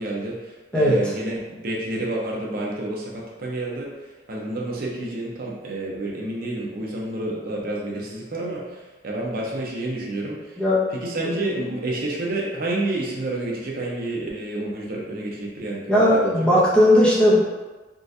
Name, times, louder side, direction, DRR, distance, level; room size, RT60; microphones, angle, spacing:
voice 1, 0.0-3.9 4.3-10.5 10.9-16.4, right 2 dB, 55° right, -3 dB, 0.7 m, -29 dB
voice 2, 0.7-1.1 10.6-10.8 11.2-11.5 15.9-17.4, left 1 dB, 5° left, -8 dB, 0.8 m, -17 dB
3.8 x 2.4 x 2.6 m, 1.2 s
head